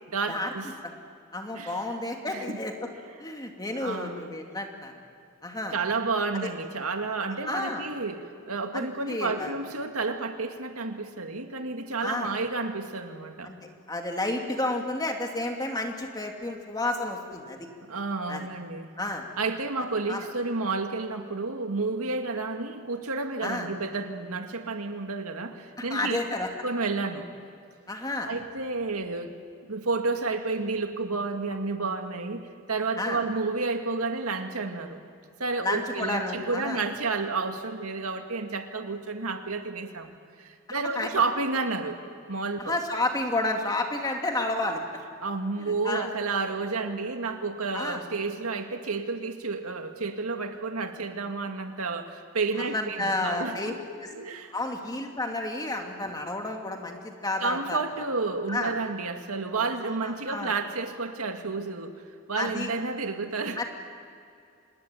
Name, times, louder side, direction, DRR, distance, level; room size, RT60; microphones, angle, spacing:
voice 1, 0.1-0.7 1.5-1.8 2.3-2.6 3.8-4.3 5.7-13.5 17.9-18.9 19.4-26.2 26.6-27.3 28.3-29.3 29.7-32.4 32.7-35.0 35.4-42.0 42.3-42.8 45.2-53.8 54.1-54.5 57.4-61.9 62.3-63.6, right 3 dB, 90° right, 5 dB, 2.1 m, -31 dB
voice 2, 1.3-2.9 3.2-4.9 5.4-5.8 6.3-6.5 7.5-7.8 8.7-9.5 12.0-12.3 13.4-13.6 13.9-17.6 18.3-18.5 19.0-19.3 20.1-20.2 23.4-23.7 25.8-26.5 27.9-28.3 33.0-33.2 35.6-36.8 41.0-41.2 42.6-44.8 45.8-46.1 47.7-48.0 52.6-53.7 54.0-54.1 54.5-57.8 58.5-58.7 60.0-60.5 62.4-62.7 63.6-63.7, left 2 dB, 20° left, 2 dB, 2.5 m, -31 dB
26.0 x 20.5 x 9.2 m, 2.4 s
head